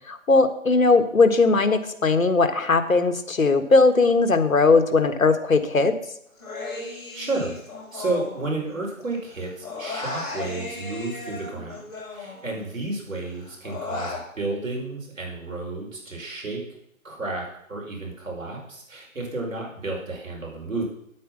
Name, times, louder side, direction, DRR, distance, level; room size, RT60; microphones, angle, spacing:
voice 1, 0.1-5.9, left 3 dB, 75° left, 9 dB, 1.5 m, -19 dB
Human voice, 6.4-9.0 9.3-12.8 13.1-14.2, left 3 dB, 30° left, 4.4 m, -36 dB
voice 2, 7.1-7.6 7.9-11.8 12.1-16.6 17.0-20.8, right 2 dB, 70° right, -1 dB, 5.0 m, -31 dB
9.8 x 8.4 x 6.1 m, 0.73 s
figure-of-eight pair, 150°, 41 cm